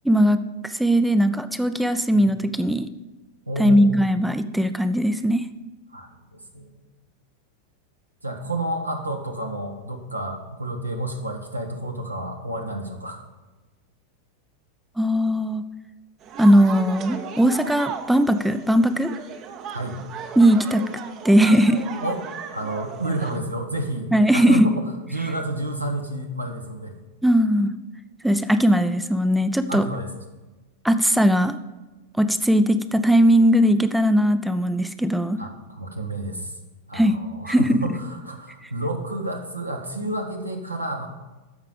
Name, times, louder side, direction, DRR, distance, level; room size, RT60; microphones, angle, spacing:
voice 1, 0.1-2.9 3.6-5.4 15.0-15.6 16.4-19.1 20.4-20.8 21.2-21.8 24.1-24.7 27.2-27.7 28.2-29.8 30.8-31.6 32.2-35.4 36.9-37.2 37.5-37.8, equal, 5° right, 11 dB, 0.4 m, -19 dB
voice 2, 3.5-4.0 5.9-6.1 6.5-6.7 8.2-13.2 19.7-20.0 22.0-26.9 29.7-30.1 35.4-36.6 36.9-41.1, right 1 dB, 85° right, 3 dB, 1.3 m, -30 dB
sound 1, 16.2-23.4, right 7 dB, 35° right, 0.8 m, -36 dB
13.5 x 5.7 x 5.2 m, 1.1 s
figure-of-eight pair, 90°, 0 cm